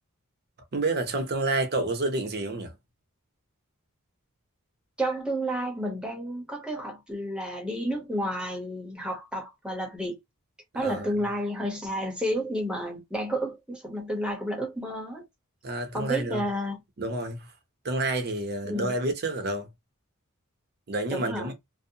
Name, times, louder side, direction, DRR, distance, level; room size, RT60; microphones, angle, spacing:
voice 1, 0.7-2.7 10.8-11.1 15.6-16.4 17.0-17.5 17.8-19.7 20.9-21.5, right 2 dB, 45° right, 0.7 m, -29 dB
voice 2, 5.0-10.2 10.7-15.2 15.9-16.8 18.7-18.9 21.1-21.5, equal, 5° right, 0.8 m, -31 dB
2.6 x 2.0 x 2.7 m
head